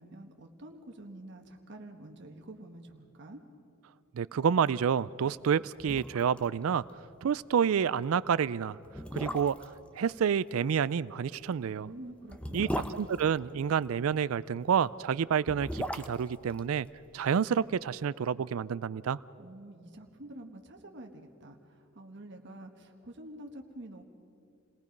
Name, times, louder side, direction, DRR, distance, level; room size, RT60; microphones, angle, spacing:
voice 1, 0.0-3.4 11.7-13.1 19.4-24.0, right 1 dB, 55° right, 1.4 m, -48 dB
voice 2, 4.1-6.8 7.2-8.8 9.1-9.6 10.0-11.9 12.5-12.7 12.9-16.9 17.1-19.2, right 7 dB, 75° right, 0.4 m, -29 dB
sound 1, 5.4-5.5 5.8-6.5 6.7-6.8 7.2-7.4 8.1-8.2 8.8-9.8 11.3-14.0 15.2-17.5 17.7-17.8, equal, 5° left, 0.8 m, -38 dB
29.0 x 19.5 x 5.3 m
head